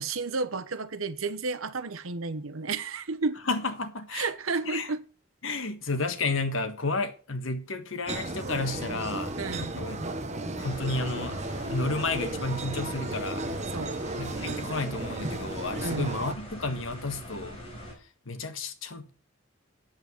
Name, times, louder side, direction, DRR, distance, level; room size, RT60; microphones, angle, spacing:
voice 1, 0.0-3.4 4.1-5.0 9.4-9.7 13.7-14.0 15.8-16.1, right 4 dB, 85° right, 1.0 m, -31 dB
voice 2, 3.5-4.3 4.6-4.9 5.4-9.3 9.8-10.0 10.6-11.4 11.7-13.5 14.2-17.6 18.3-19.1, left 3 dB, 75° left, 1.6 m, -31 dB
sound 1, 8.1-16.3, right 2 dB, 35° right, 1.3 m, -34 dB
sound 2, 10.6-17.9, equal, 30° left, 4.6 m, -43 dB
8.9 x 7.9 x 7.2 m
head